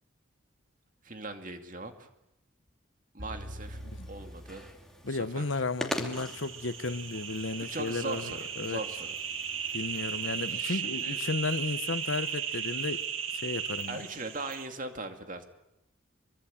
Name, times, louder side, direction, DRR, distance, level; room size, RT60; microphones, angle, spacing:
voice 1, 1.0-2.1 3.1-3.8 4.1-4.7 5.0-5.6 7.5-9.2 10.5-11.2 13.9-15.4, right 3 dB, 40° right, 2.5 m, -40 dB
sound 1, 3.2-5.4 5.7-5.8, equal, 70° right, 7.8 m, -44 dB
sound 2, 3.6-10.6, left 1 dB, ahead, 2.6 m, -43 dB
voice 2, 5.0-8.8 9.7-13.0 13.3-14.0, left 3 dB, 75° left, 1.0 m, -34 dB
sound 3, 6.1-14.7, right 8 dB, 85° right, 2.6 m, -36 dB
25.0 x 23.5 x 8.7 m
head